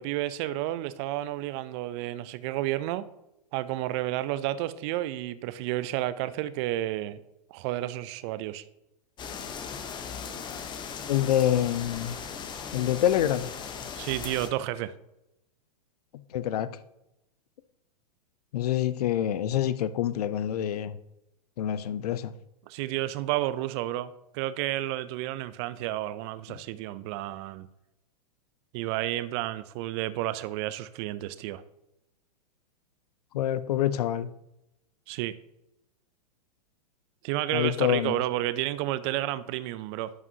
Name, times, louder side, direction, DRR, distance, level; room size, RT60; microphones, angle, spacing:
voice 1, 0.0-3.0 3.5-7.2 7.5-8.6 14.0-14.9 22.7-27.7 28.7-31.6 35.1-35.4 37.2-40.1, right 15 dB, 40° right, 0.4 m, -31 dB
sound 1, 9.2-14.5, left 6 dB, 20° left, 0.7 m, -38 dB
voice 2, 11.1-12.2 12.7-13.5 16.3-16.7 18.5-20.9 21.6-22.3 26.5-26.6 33.3-34.3 37.5-38.2, left 11 dB, 65° left, 0.6 m, -26 dB
11.0 x 4.8 x 2.8 m
hypercardioid pair, 115°, 21 cm